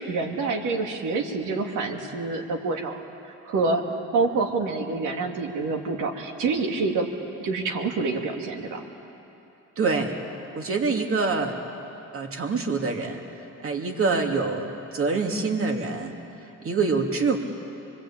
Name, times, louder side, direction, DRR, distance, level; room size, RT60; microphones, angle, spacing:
voice 1, 0.0-3.0 3.4-3.8 4.1-7.1 7.4-8.8, right 3 dB, 80° right, 2 dB, 2.6 m, -27 dB
voice 2, 9.8-10.1 10.5-11.6 12.1-13.2 13.6-14.7 14.9-16.1 16.6-17.4, right 4 dB, 45° right, 3 dB, 2.8 m, -25 dB
24.5 x 23.0 x 8.8 m, 2.9 s
cardioid pair, 90°, 30 cm